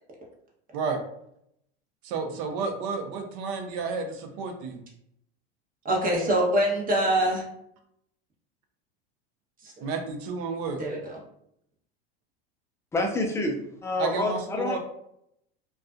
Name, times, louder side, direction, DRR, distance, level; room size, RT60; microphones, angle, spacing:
voice 1, 2.0-4.8 9.8-10.8 14.0-14.8, right 4 dB, 60° right, 4 dB, 0.7 m, -31 dB
voice 2, 5.8-7.4 9.6-9.7 10.8-11.2, right 1 dB, 25° right, -3 dB, 1.0 m, -24 dB
voice 3, 12.9-14.8, left 2 dB, 10° left, 2 dB, 0.3 m, -28 dB
2.4 x 2.3 x 2.4 m, 0.74 s
hypercardioid pair, 100°, 31 cm